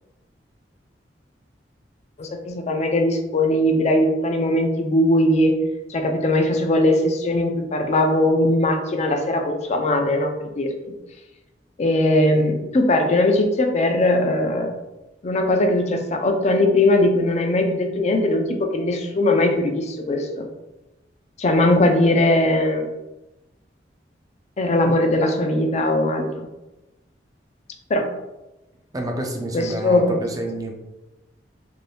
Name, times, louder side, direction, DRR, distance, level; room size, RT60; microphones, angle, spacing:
voice 1, 2.2-5.6 5.9-10.9 11.8-14.7 15.2-20.5 21.4-22.9 24.6-26.5 27.9-28.1 29.5-30.2, left 1 dB, 40° left, 4 dB, 0.4 m, -20 dB
voice 2, 28.9-30.7, right 1 dB, 20° right, 1 dB, 0.5 m, -28 dB
2.6 x 2.6 x 3.3 m, 1.0 s
head